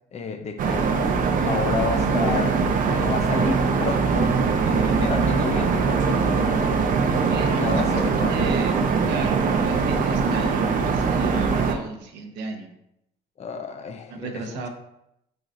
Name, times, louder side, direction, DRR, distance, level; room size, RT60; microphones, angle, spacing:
voice 1, 0.1-0.9 1.5-2.6 2.9-4.3 4.6-6.5 7.6-8.5 13.4-14.7, left 5 dB, 40° left, 7 dB, 0.7 m, -31 dB
sound 1, 0.6-11.7, right 5 dB, 55° right, 0.7 m, -22 dB
voice 2, 7.3-8.7 9.1-12.7 14.1-14.7, right 4 dB, 85° right, 3 dB, 1.1 m, -34 dB
9.0 x 4.0 x 2.6 m, 0.82 s
cardioid pair, 110°, 17 cm